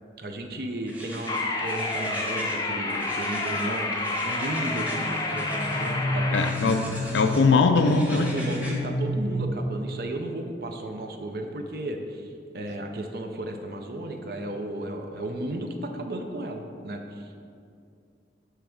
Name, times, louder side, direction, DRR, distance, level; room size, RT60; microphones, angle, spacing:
voice 1, 0.2-3.9 4.2-6.9 8.1-17.4, right 1 dB, 55° right, 4 dB, 0.6 m, -34 dB
sound 1, 0.9-2.6 2.9-5.9 6.3-7.4 7.8-8.8, equal, 10° right, 1.0 m, -40 dB
sound 2, 1.3-6.5, left 2 dB, 20° left, 0.5 m, -29 dB
sound 3, 4.6-10.1, left 1 dB, 40° right, 1.2 m, -31 dB
voice 2, 6.3-8.3, left 4 dB, 80° left, 7 dB, 0.4 m, -21 dB
8.0 x 3.4 x 6.4 m, 2.4 s
head